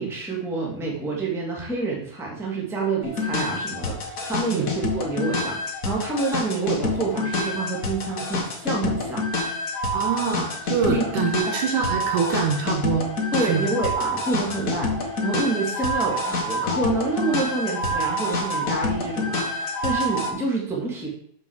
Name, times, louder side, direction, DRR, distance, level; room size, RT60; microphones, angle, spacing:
voice 1, 0.0-9.2 10.9-11.1 11.5-11.6 13.3-21.1, right 3 dB, ahead, -3 dB, 1.5 m, -27 dB
sound 1, 3.0-20.3, left 1 dB, 60° left, 0.8 m, -27 dB
voice 2, 9.9-13.1 13.5-13.7, right 6 dB, 70° right, 4 dB, 2.3 m, -25 dB
7.0 x 5.9 x 6.5 m, 0.64 s
omnidirectional pair, 4.0 m